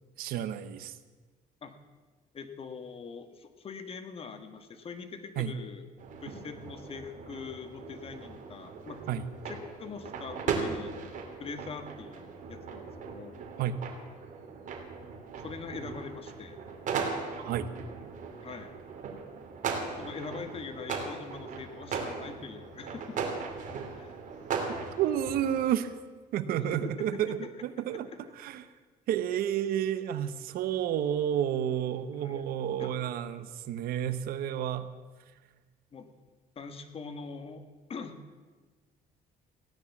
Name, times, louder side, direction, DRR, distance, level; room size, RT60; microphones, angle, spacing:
voice 1, 0.2-0.9 5.4-5.5 9.1-9.2 13.6-13.8 17.0-17.1 17.4-17.7 25.0-25.9 26.3-28.1 28.4-28.6 29.1-34.9, right 10 dB, 75° right, 13 dB, 1.0 m, -30 dB
voice 2, 2.3-5.9 6.2-9.0 9.5-10.9 11.4-13.4 15.4-16.6 18.4-18.7 20.0-23.3 24.0-24.2 26.7-27.5 28.1-28.2 32.2-32.4 32.8-33.0 35.9-36.1 36.5-37.6 37.9-38.2, left 5 dB, 40° left, 8 dB, 1.5 m, -43 dB
sound 1, 6.0-25.6, right 5 dB, 55° right, 2.5 m, -38 dB
16.0 x 10.5 x 7.2 m, 1.3 s
cardioid pair, 115°, 15 cm